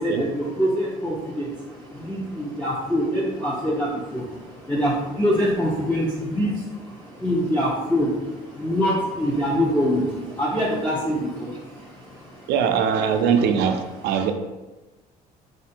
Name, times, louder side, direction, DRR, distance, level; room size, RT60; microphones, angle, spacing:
voice 1, 0.0-12.5, equal, 10° left, -7 dB, 0.8 m, -25 dB
voice 2, 12.5-14.3, right 7 dB, 80° right, 7 dB, 0.5 m, -21 dB
4.3 x 2.6 x 4.2 m, 1.1 s
cardioid pair, 110°, 17 cm